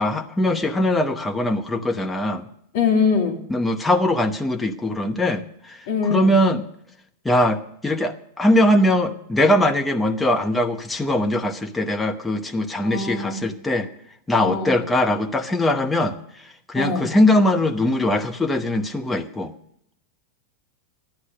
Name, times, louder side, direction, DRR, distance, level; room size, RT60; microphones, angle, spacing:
voice 1, 0.0-2.5 3.5-5.8 6.1-6.6 7.2-13.9 14.3-16.2 16.7-19.5, left 1 dB, 10° left, 4 dB, 0.9 m, -21 dB
voice 2, 2.7-3.5 5.9-6.4 12.8-13.4 14.4-14.8 16.7-17.1, left 5 dB, 50° left, 1 dB, 2.3 m, -23 dB
12.5 x 9.8 x 6.3 m, 0.73 s
figure-of-eight pair, 90°, 0 cm